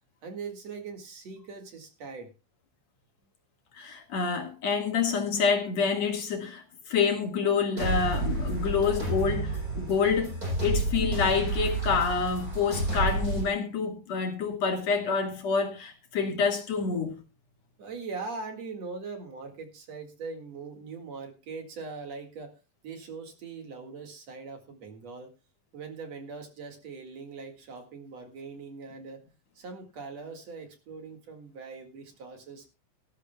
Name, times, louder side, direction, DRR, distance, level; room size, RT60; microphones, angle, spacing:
voice 1, 0.2-2.3 17.8-22.5 22.8-25.3 25.7-29.2 29.6-32.7, right 4 dB, 55° right, 2.9 m, -41 dB
voice 2, 3.8-17.2, left 5 dB, 55° left, 2.7 m, -27 dB
sound 1, 7.8-13.4, right 2 dB, 25° right, 7.6 m, -30 dB
19.0 x 12.5 x 2.2 m
omnidirectional pair, 3.9 m